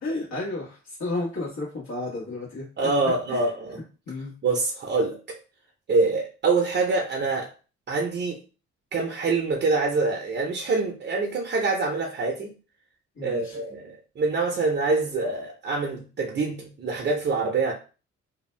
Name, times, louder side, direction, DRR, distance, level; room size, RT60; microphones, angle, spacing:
voice 1, 0.0-2.7 3.3-3.4 4.1-4.3 13.2-13.6, left 2 dB, 65° left, -7 dB, 1.3 m, -32 dB
voice 2, 2.8-3.8 4.4-5.4 5.9-7.5 7.9-8.4 8.9-12.5 13.2-17.7, right 3 dB, 35° right, 1 dB, 0.6 m, -25 dB
2.6 x 2.2 x 3.1 m, 0.35 s
cardioid pair, 90°, 30 cm